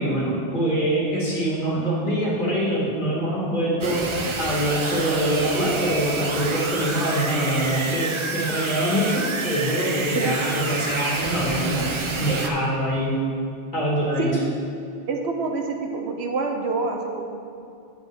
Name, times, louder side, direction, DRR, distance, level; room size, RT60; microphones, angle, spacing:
voice 1, 0.0-4.1 4.4-11.9 12.2-13.1 13.7-14.3, right 1 dB, 50° left, -7 dB, 2.3 m, -24 dB
sound 1, 3.8-12.5, right 3 dB, 40° right, 0.5 m, -29 dB
voice 2, 15.1-17.2, right 3 dB, 80° right, 3 dB, 1.1 m, -26 dB
9.8 x 7.7 x 3.5 m, 2.4 s
omnidirectional pair, 1.1 m